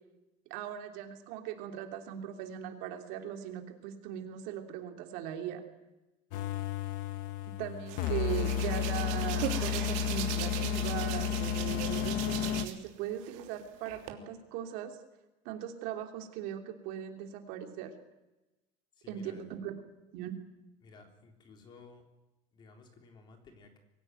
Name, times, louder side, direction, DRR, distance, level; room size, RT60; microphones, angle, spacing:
voice 1, 0.5-5.6 7.6-15.0 15.4-17.9 19.1-19.8 20.1-20.4, right 10 dB, 65° right, 5 dB, 3.2 m, -39 dB
sound 1, 6.3-12.7, left 9 dB, 65° left, 1.3 m, -32 dB
Hands, 7.9-12.9 13.2-14.1, right 12 dB, 90° right, 3.3 m, -39 dB
voice 2, 18.9-19.5 20.8-22.0 22.5-23.8, left 4 dB, 30° left, 5 dB, 3.6 m, -55 dB
24.0 x 16.0 x 9.3 m, 1.0 s
cardioid pair, 180°, 16 cm